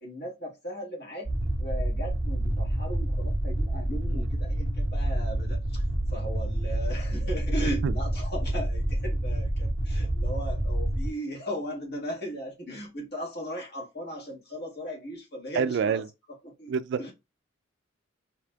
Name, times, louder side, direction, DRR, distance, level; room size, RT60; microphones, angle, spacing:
voice 1, 0.0-1.3 1.6-5.8 6.1-17.1, equal, 55° left, 1.6 m, -37 dB
sound 1, 1.2-11.1, right 1 dB, 85° left, 1.7 m, -28 dB
voice 2, 15.6-16.0 16.7-17.0, right 6 dB, 60° right, 0.3 m, -26 dB
4.9 x 2.9 x 2.3 m
head